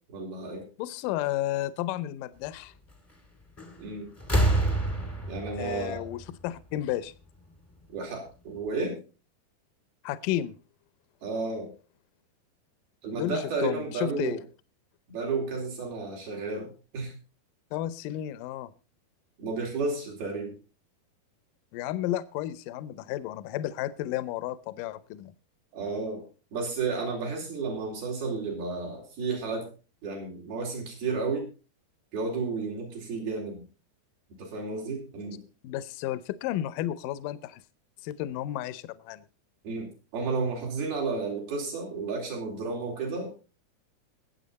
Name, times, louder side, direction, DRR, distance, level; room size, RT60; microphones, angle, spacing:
voice 1, 0.1-0.6 3.8-4.1 5.3-6.1 7.9-9.0 11.2-11.7 13.0-14.4 15.1-17.1 19.4-20.6 25.7-26.2 26.5-29.7 30.0-31.5 32.1-33.6 34.4-35.4 39.6-43.3, right 4 dB, 70° right, -1 dB, 5.9 m, -32 dB
voice 2, 0.8-2.7 5.6-7.1 10.0-10.6 13.1-14.4 17.7-18.7 21.7-25.3 35.6-37.6 38.0-39.3, left 13 dB, 75° left, 16 dB, 2.1 m, -32 dB
sound 1, 3.6-3.9 4.2-6.9 8.1-8.2, right 1 dB, 5° left, 1.1 m, -28 dB
21.0 x 7.7 x 4.1 m, 0.34 s
omnidirectional pair, 4.4 m